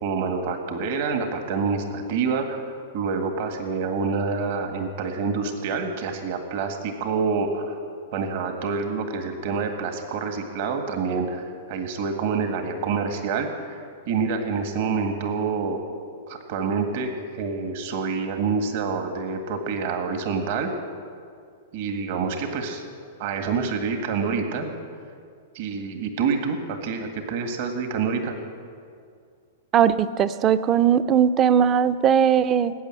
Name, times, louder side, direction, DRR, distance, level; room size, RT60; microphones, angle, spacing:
voice 1, 0.0-2.6 2.9-7.8 8.1-15.8 16.3-20.7 21.7-22.8 23.2-24.7 25.5-28.4, right 5 dB, 60° right, 5 dB, 1.8 m, -27 dB
voice 2, 29.7-32.7, right 8 dB, 30° right, 14 dB, 0.6 m, -19 dB
19.0 x 8.9 x 7.6 m, 2.2 s
hypercardioid pair, 125°, 0 cm